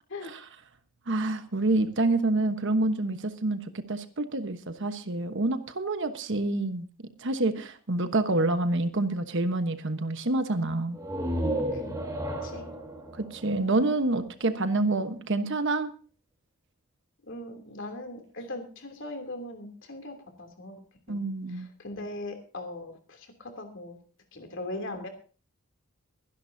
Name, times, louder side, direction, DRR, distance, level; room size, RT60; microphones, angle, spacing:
voice 1, 1.1-6.9 7.2-11.0 13.1-15.9 21.1-21.7, right 2 dB, 60° right, 9 dB, 1.2 m, -27 dB
sound 1, 10.9-14.6, right 1 dB, 15° right, 3.5 m, -33 dB
voice 2, 17.2-20.8 21.1-21.2 21.5-24.0 24.3-25.1, left 2 dB, 60° left, 5 dB, 3.0 m, -40 dB
23.5 x 11.0 x 2.7 m, 0.38 s
head